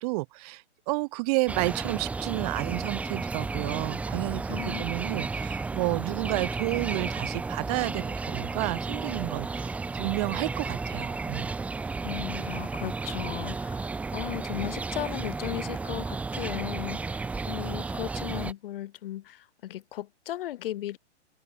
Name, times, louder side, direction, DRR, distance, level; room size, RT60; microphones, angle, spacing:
voice 1, 0.0-11.5, right 25 dB, 35° right, 1.1 m, -31 dB
sound 1, 1.5-18.5, right 4 dB, 5° right, 0.6 m, -33 dB
voice 2, 4.5-4.9 12.0-21.0, left 13 dB, 50° left, 0.8 m, -36 dB
hypercardioid pair, 135°, 35 cm